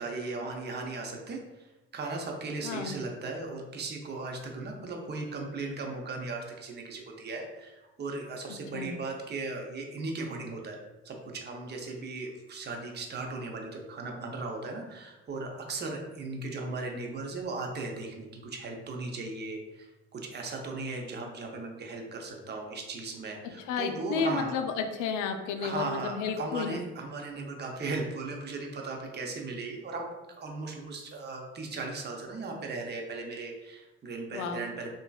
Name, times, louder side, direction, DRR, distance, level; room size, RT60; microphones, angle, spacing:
voice 1, 0.0-24.5 25.6-30.1 30.4-34.9, right 3 dB, 35° right, 1 dB, 0.6 m, -37 dB
voice 2, 2.6-3.0 8.7-9.0 23.7-26.9 34.3-34.6, left 5 dB, 75° left, 5 dB, 0.5 m, -32 dB
2.9 x 2.6 x 2.3 m, 1.1 s
hypercardioid pair, 55°, 32 cm